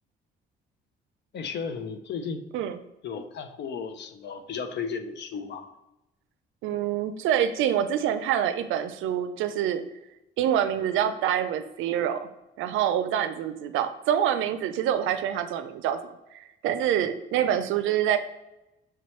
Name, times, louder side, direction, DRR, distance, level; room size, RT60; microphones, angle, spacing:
voice 1, 1.3-2.4 3.0-5.8, left 5 dB, 60° left, 8 dB, 0.6 m, -34 dB
voice 2, 6.6-9.8 10.4-12.3 12.6-18.2, right 10 dB, 90° right, 11 dB, 0.4 m, -26 dB
5.9 x 2.9 x 3.1 m, 0.92 s
cardioid pair, 90°, 20 cm